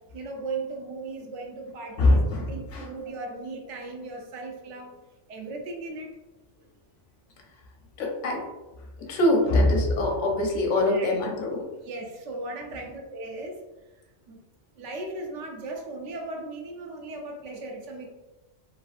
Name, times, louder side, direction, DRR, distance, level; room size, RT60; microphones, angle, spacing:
voice 1, 0.1-2.2 2.5-4.9 5.3-6.1 10.9-11.1 11.8-13.6 14.3-14.4 14.8-18.1, right 2 dB, 80° right, 2 dB, 0.9 m, -37 dB
voice 2, 2.0-2.9 8.0-8.4 9.1-11.6, left 1 dB, 85° left, 1 dB, 1.0 m, -23 dB
3.1 x 2.5 x 2.4 m, 1.1 s
omnidirectional pair, 1.2 m